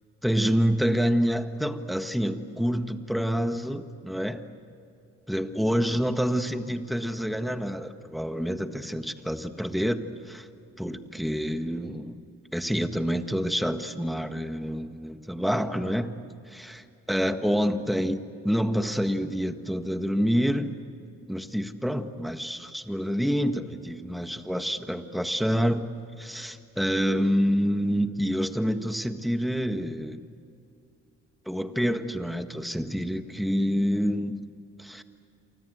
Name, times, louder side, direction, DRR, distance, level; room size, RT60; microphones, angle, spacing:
voice 1, 0.2-4.4 5.3-10.5 10.8-12.2 12.5-16.1 16.5-20.7 21.3-25.9 26.2-30.2 31.4-34.4 34.8-35.0, equal, ahead, 8 dB, 1.6 m, -27 dB
28.5 x 25.0 x 8.1 m, 2.6 s
cardioid pair, 90°, 30 cm